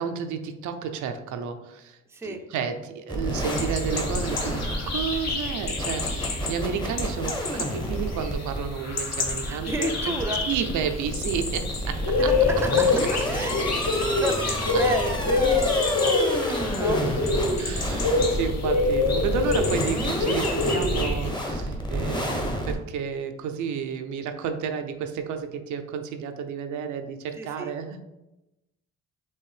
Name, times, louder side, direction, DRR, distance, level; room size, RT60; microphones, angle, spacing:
voice 1, 0.0-10.2 10.5-12.1 14.9-15.0 16.0-16.1 17.6-28.0, right 7 dB, 75° right, 7 dB, 0.5 m, -31 dB
voice 2, 2.1-2.4 9.4-10.4 12.3-16.5 16.8-17.6 27.4-27.7, right 1 dB, 10° right, 4 dB, 0.4 m, -32 dB
sound 1, 3.1-22.8, equal, 15° left, 0.8 m, -30 dB
sound 2, 3.5-21.3, left 3 dB, 60° left, 1.0 m, -27 dB
4.5 x 3.0 x 3.2 m, 0.96 s
cardioid pair, 90°, 30 cm